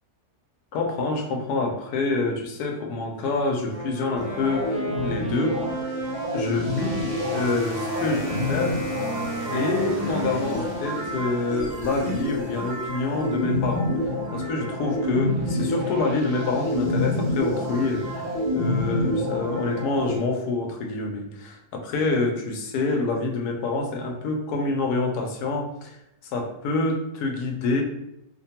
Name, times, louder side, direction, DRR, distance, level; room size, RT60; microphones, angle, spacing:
voice 1, 0.7-5.6 6.3-7.0 7.3-9.1 9.5-14.0 14.3-26.0 26.3-27.8, left 3 dB, 85° left, 2 dB, 1.1 m, -27 dB
Wind instrument woodwind instrument, 3.6-11.5, equal, 15° right, 0.7 m, -34 dB
sound 1, 4.2-20.2, left 1 dB, 70° right, 0.4 m, -28 dB
Wind instrument woodwind instrument 2, 6.8-11.1, equal, 50° left, 0.5 m, -37 dB
2.9 x 2.2 x 2.7 m, 0.80 s
omnidirectional pair, 1.6 m